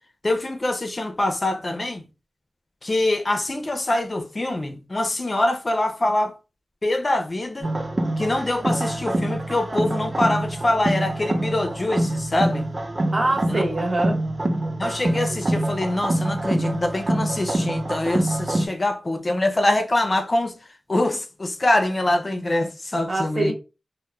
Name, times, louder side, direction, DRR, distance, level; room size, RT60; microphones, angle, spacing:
voice 1, 0.2-2.0 2.8-6.3 6.8-7.7 8.2-12.6 13.5-13.6 14.8-20.6 20.9-23.5, left 1 dB, 35° left, 0.4 m, -24 dB
sound 1, 7.6-18.7, right 1 dB, 35° right, 0.5 m, -25 dB
voice 2, 13.1-14.2 23.1-23.5, right 2 dB, 50° right, 1.0 m, -23 dB
2.2 x 2.0 x 2.9 m
wide cardioid pair, 70°, 0 cm